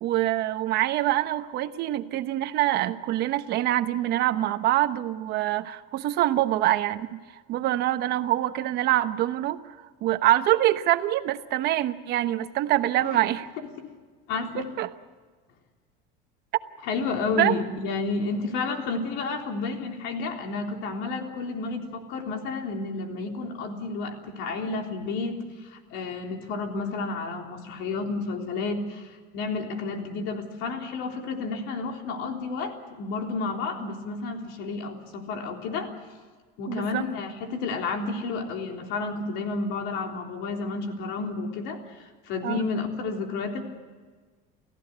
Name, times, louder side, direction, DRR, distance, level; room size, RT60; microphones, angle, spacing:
voice 1, 0.0-7.2 7.5-9.6 10.0-13.5 14.8-14.9 17.4-17.6 36.7-37.1 42.4-42.6, right 14 dB, 55° right, 10 dB, 1.1 m, -25 dB
voice 2, 14.3-14.7 16.8-25.4 25.6-35.9 36.6-41.8 42.3-43.6, left 4 dB, 70° left, 3 dB, 3.7 m, -31 dB
29.0 x 15.0 x 8.1 m, 1.5 s
cardioid pair, 140°, 20 cm